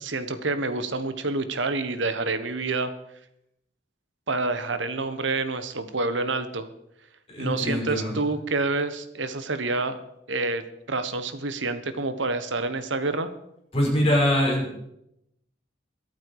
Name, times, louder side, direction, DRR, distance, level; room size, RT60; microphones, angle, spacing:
voice 1, 0.0-2.9 4.3-6.7 7.4-10.0 10.3-13.3, right 3 dB, 80° right, 11 dB, 1.3 m, -28 dB
voice 2, 7.3-8.2 13.7-14.8, left 1 dB, 30° left, -2 dB, 5.6 m, -23 dB
22.5 x 8.9 x 4.9 m, 0.81 s
head